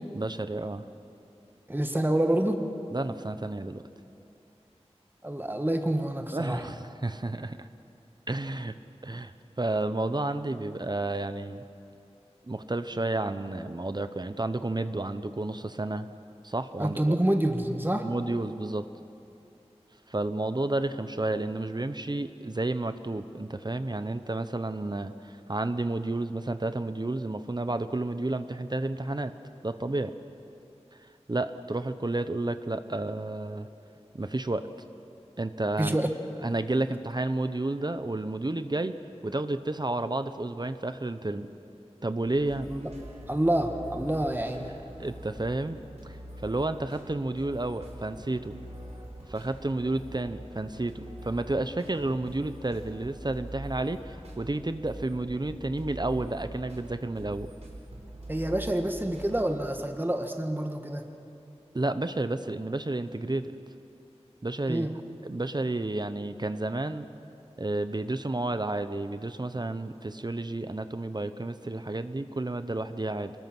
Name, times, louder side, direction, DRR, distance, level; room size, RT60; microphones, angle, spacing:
voice 1, 0.1-0.8 2.9-3.8 6.3-7.7 8.3-8.8 9.0-11.6 12.5-16.1 16.4-17.2 18.0-18.9 20.1-29.3 29.6-30.1 31.3-33.7 34.1-34.7 35.4-36.0 36.4-39.0 39.2-41.5 42.0-42.7 45.0-46.2 46.4-48.5 49.3-57.5 61.7-63.6 64.4-64.9 65.2-67.1 67.6-73.3, right 2 dB, 40° right, 11 dB, 0.8 m, -31 dB
voice 2, 1.7-2.6 5.2-6.7 16.8-18.1 35.8-36.1 42.7-42.9 43.3-44.7 58.3-61.0 64.7-64.9, right 1 dB, 20° right, 5 dB, 1.5 m, -27 dB
sound 1, 42.2-59.7, right 1 dB, 80° right, 4.0 m, -44 dB
24.5 x 21.0 x 6.1 m, 2.7 s
wide cardioid pair, 50°, 11 cm